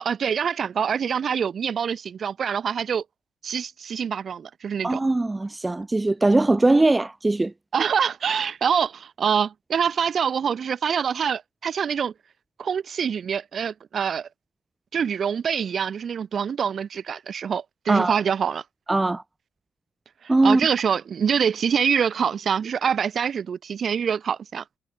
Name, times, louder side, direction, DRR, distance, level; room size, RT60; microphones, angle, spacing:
voice 1, 0.0-3.0 3.4-5.0 7.7-12.1 12.6-14.3 14.9-18.6 20.2-24.6, right 7 dB, 50° right, 1.2 m, -25 dB
voice 2, 4.8-7.5 17.9-18.2 18.9-19.2 20.3-20.6, right 2 dB, 15° right, 0.4 m, -20 dB
cardioid pair, 90°, 0 cm